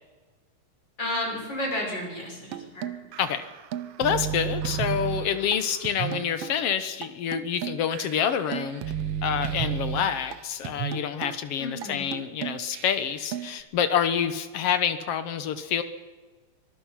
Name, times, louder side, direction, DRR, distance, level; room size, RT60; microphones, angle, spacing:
voice 1, 1.0-3.2 11.6-12.2, left 1 dB, 30° left, 0 dB, 6.7 m, -32 dB
sound 1, 2.5-6.6 7.0-7.1 7.3-10.4 10.6-11.4 11.8-11.9 12.1-13.6, right 9 dB, 75° right, 1.4 m, -33 dB
voice 2, 4.0-8.8 9.2-15.8, left 8 dB, 65° left, 11 dB, 1.6 m, -27 dB
24.5 x 20.0 x 5.8 m, 1.3 s
omnidirectional pair, 3.8 m